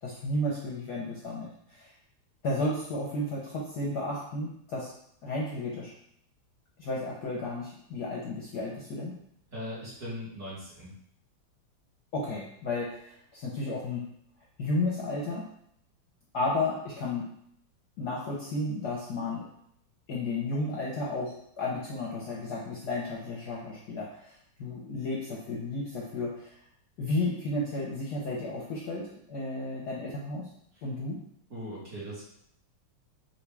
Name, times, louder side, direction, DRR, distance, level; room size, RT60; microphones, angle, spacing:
voice 1, 0.0-1.9 2.4-4.9 5.2-5.9 6.8-9.1 12.1-14.0 14.6-15.4 16.3-17.3 18.0-19.4 20.1-24.3 24.6-26.6 27.0-30.5 30.8-31.2, left 2 dB, 60° left, -4 dB, 1.1 m, -33 dB
voice 2, 9.5-10.9 31.5-32.2, equal, 40° right, -8 dB, 2.1 m, -39 dB
5.3 x 2.8 x 3.4 m, 0.70 s
omnidirectional pair, 2.4 m